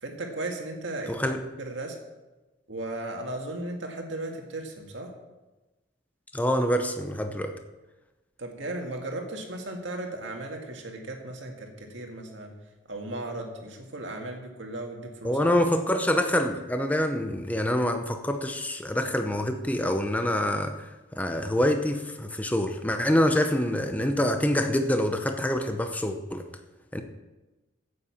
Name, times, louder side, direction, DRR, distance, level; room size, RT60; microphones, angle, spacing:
voice 1, 0.0-2.0 2.7-5.1 8.4-12.5 12.9-15.5, right 2 dB, 75° right, 2 dB, 2.0 m, -36 dB
voice 2, 6.3-7.5 15.2-20.8 21.1-26.4 26.9-27.0, left 1 dB, 10° left, 6 dB, 0.7 m, -26 dB
9.3 x 8.6 x 7.1 m, 1.1 s
head